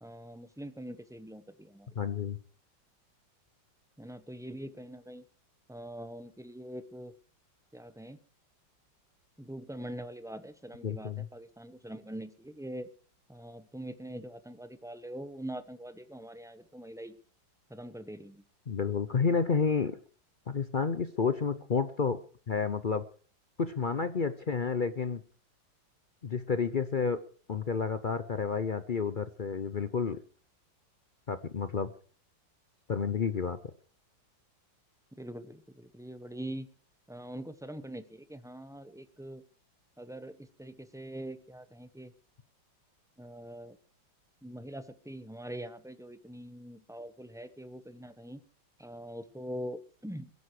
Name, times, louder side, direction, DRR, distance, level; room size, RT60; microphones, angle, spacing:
voice 1, 0.0-1.9 4.0-5.2 5.7-7.1 7.7-8.2 9.4-12.9 13.3-17.2 17.7-18.4 35.2-36.7 37.1-39.4 40.0-42.1 43.2-43.8 44.4-48.4 48.8-50.3, right 1 dB, 5° right, 11 dB, 0.6 m, -43 dB
voice 2, 2.0-2.4 10.8-11.3 18.7-20.0 20.5-22.2 22.5-23.0 23.6-25.2 26.2-27.2 27.5-30.2 31.3-31.9 32.9-33.6, left 5 dB, 75° left, 12 dB, 0.4 m, -30 dB
21.5 x 11.0 x 4.9 m, 0.42 s
omnidirectional pair, 2.1 m